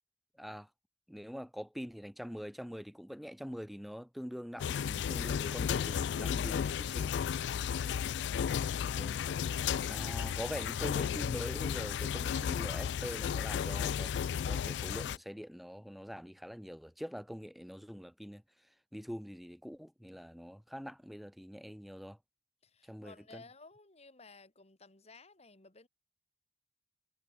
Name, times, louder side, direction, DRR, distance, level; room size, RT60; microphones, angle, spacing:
voice 1, 0.4-0.7 1.1-7.2 9.0-9.2 9.9-14.2 14.5-18.4 18.9-22.2 22.8-23.4, equal, ahead, 1.5 m, -44 dB
sound 1, 4.6-15.2, left 8 dB, 70° left, 0.3 m, -34 dB
voice 2, 22.6-25.9, left 3 dB, 35° left, 2.5 m, -57 dB
head